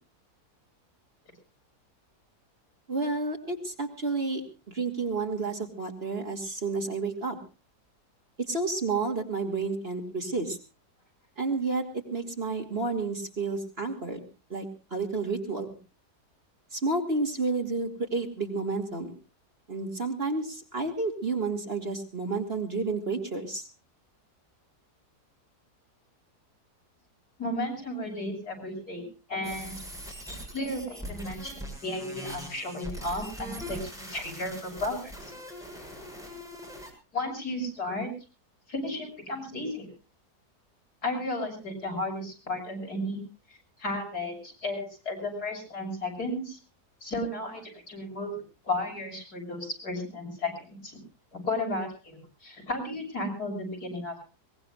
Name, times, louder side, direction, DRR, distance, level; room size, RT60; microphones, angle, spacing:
voice 1, 2.9-7.4 8.4-10.6 11.4-14.2 14.5-14.6 14.9-15.7 16.7-19.1 19.7-23.7, right 3 dB, 35° right, 3 dB, 2.8 m, -30 dB
voice 2, 27.4-29.0 29.3-29.7 30.5-35.3 37.1-38.1 38.7-39.9 41.0-43.2 43.8-46.6 47.0-48.3 48.6-51.0 51.3-54.2, left 1 dB, 70° left, 1 dB, 7.6 m, -34 dB
sound 1, 29.4-36.9, equal, ahead, 7.2 m, -41 dB
23.0 x 21.0 x 2.5 m, 0.33 s
omnidirectional pair, 1.7 m